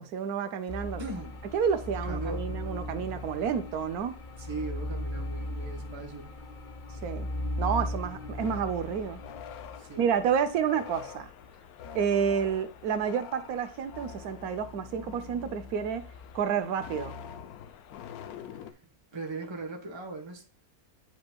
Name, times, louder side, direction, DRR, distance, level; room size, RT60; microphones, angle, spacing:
voice 1, 0.0-1.0 1.5-4.2 7.0-7.3 7.6-9.2 10.0-11.3 11.9-16.1 16.3-17.2, right 7 dB, 85° right, 1.2 m, -29 dB
sound 1, 0.7-10.3, left 1 dB, 45° left, 0.6 m, -37 dB
voice 2, 1.0-1.4 2.0-2.5 4.4-6.4 9.8-10.1 18.5-18.8 19.1-20.4, right 3 dB, 20° right, 1.0 m, -39 dB
sound 2, 8.4-18.7, left 7 dB, 80° left, 1.1 m, -45 dB
9.3 x 5.2 x 2.2 m
omnidirectional pair, 1.6 m